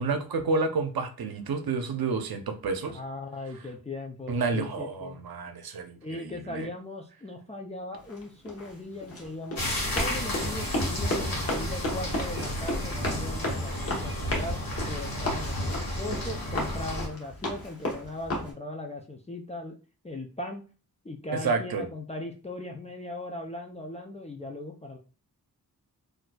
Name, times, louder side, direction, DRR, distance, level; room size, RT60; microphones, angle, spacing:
voice 1, 0.0-3.0 4.3-6.7 21.4-21.9, right 4 dB, 75° right, 7 dB, 0.7 m, -30 dB
voice 2, 2.9-5.2 6.0-9.6 9.9-14.6 14.8-19.8 20.0-20.6 21.0-25.0, left 2 dB, 20° left, 1 dB, 0.4 m, -38 dB
Run, 8.0-18.5, left 1 dB, 40° left, 1.0 m, -34 dB
sound 1, 9.6-17.1, left 1 dB, 65° left, 1.4 m, -32 dB
4.1 x 2.6 x 2.2 m, 0.36 s
wide cardioid pair, 140°, 37 cm